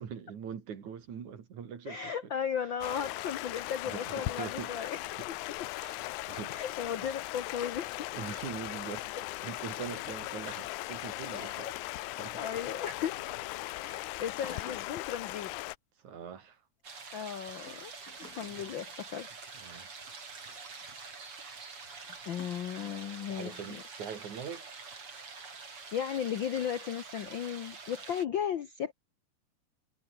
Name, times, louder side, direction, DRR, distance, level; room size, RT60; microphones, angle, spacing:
voice 1, 0.0-2.1 3.9-4.8 5.8-6.0 6.3-6.6 7.0-7.2 8.1-9.1 9.4-11.7 12.2-12.4 16.0-16.6 18.5-18.7 19.6-19.9 20.5-20.6 23.3-24.7, right 7 dB, 75° right, 4.1 m, -42 dB
voice 2, 1.9-5.4 6.5-8.1 11.3-11.7 12.3-13.2 13.7-15.5 17.1-17.9 18.2-19.3 20.0-20.2 20.8-20.9 22.0-23.8 25.9-28.9, left 8 dB, 65° left, 1.2 m, -36 dB
Stream, 2.8-15.8, left 19 dB, 90° left, 2.1 m, -38 dB
sound 1, 13.0-13.8 14.4-15.2 17.5-18.9 19.9-20.0 20.8-20.9 22.4-22.5, left 4 dB, 30° left, 2.8 m, -51 dB
sound 2, 16.8-28.3, right 4 dB, 45° right, 4.9 m, -46 dB
omnidirectional pair, 3.4 m